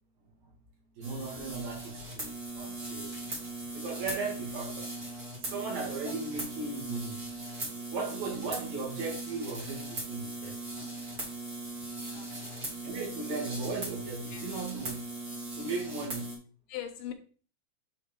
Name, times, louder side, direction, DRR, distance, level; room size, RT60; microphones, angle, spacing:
sound 1, 1.0-16.4, right 2 dB, 30° right, 2.7 m, -39 dB
voice 1, 1.0-4.9 5.4-7.3 7.9-10.6 12.8-15.0 15.3-16.3, right 4 dB, 75° right, -2 dB, 4.0 m, -37 dB
voice 2, 12.0-12.4 12.8-13.0 14.3-14.4 16.7-17.1, left 10 dB, 75° left, 7 dB, 2.4 m, -41 dB
8.2 x 4.2 x 4.4 m, 0.41 s
omnidirectional pair, 4.2 m